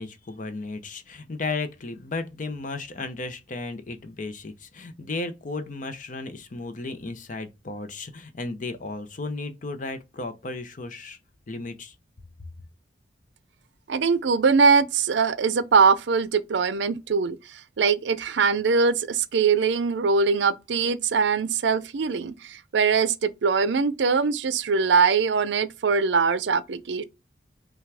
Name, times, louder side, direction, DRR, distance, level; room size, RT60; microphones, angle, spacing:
voice 1, 0.0-11.2 11.5-11.9, left 3 dB, 45° left, 0.7 m, -34 dB
voice 2, 13.9-27.0, right 5 dB, 75° right, 0.5 m, -22 dB
5.7 x 2.3 x 3.4 m
head